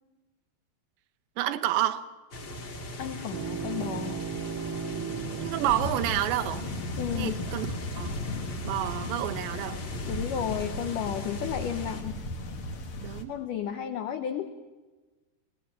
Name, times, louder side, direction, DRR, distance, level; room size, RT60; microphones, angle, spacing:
voice 1, 1.4-2.1 5.4-6.7 7.1-7.7 8.0-8.2 8.6-9.8 13.0-13.3, right 13 dB, 80° right, 8 dB, 3.1 m, -29 dB
sound 1, 2.3-12.0, left 1 dB, 40° left, 1.8 m, -40 dB
voice 2, 3.0-4.2 7.0-7.4 10.0-12.2 13.3-14.5, left 9 dB, 85° left, 8 dB, 1.8 m, -33 dB
sound 2, 3.3-7.2, right 6 dB, 60° right, 2.4 m, -37 dB
sound 3, 5.7-13.2, left 2 dB, 65° left, 1.3 m, -36 dB
25.5 x 18.0 x 7.4 m, 1.3 s
omnidirectional pair, 5.1 m